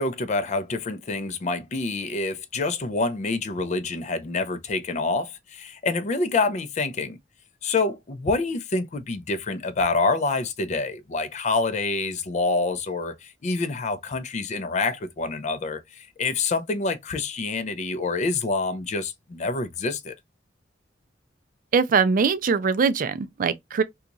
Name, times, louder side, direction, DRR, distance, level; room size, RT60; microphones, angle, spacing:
voice 1, 0.0-7.2 7.6-20.1, left 3 dB, 40° left, 0.4 m, -27 dB
voice 2, 21.7-23.8, right 5 dB, 45° right, 0.4 m, -22 dB
2.9 x 2.3 x 3.8 m
head